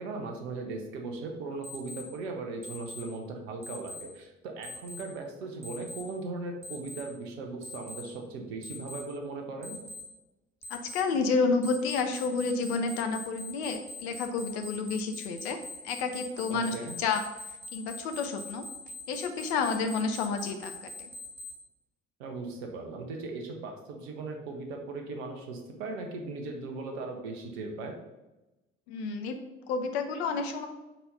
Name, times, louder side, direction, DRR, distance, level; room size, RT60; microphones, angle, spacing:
voice 1, 0.0-9.8 16.5-17.0 22.2-27.9, right 3 dB, 65° right, 3 dB, 1.1 m, -38 dB
Alarm, 1.6-2.0 2.6-3.0 3.6-4.0 4.6-5.0 5.6-6.0 6.6-7.0 7.6-8.0 8.6-9.0 9.6-10.0 10.6-11.0 11.6-21.5, left 3 dB, 40° right, 1.7 m, -42 dB
voice 2, 10.7-15.6 15.8-17.2 17.7-18.6 19.1-21.1 28.9-29.4 29.7-30.7, left 4 dB, 70° left, 6 dB, 0.8 m, -30 dB
4.5 x 4.3 x 5.4 m, 1.0 s
figure-of-eight pair, 55°, 34 cm